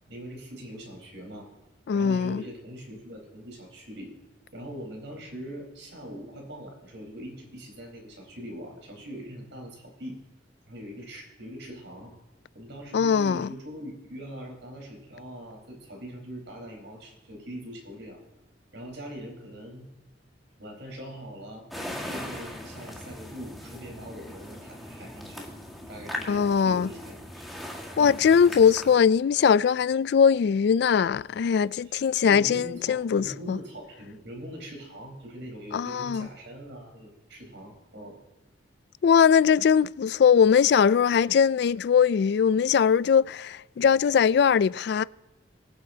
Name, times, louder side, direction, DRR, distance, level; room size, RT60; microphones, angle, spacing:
voice 1, 0.1-1.5 1.9-4.1 4.5-10.2 10.7-12.1 12.5-18.2 18.7-19.9 20.6-21.7 22.1-25.5 25.8-28.3 32.2-38.2, equal, 70° right, 4.4 m, -42 dB
voice 2, 1.9-2.4 12.9-13.5 26.3-26.9 28.0-33.6 35.7-36.3 39.0-45.0, left 7 dB, 60° left, 0.3 m, -21 dB
sound 1, 21.7-29.0, left 1 dB, ahead, 1.7 m, -39 dB
23.5 x 8.2 x 2.8 m
head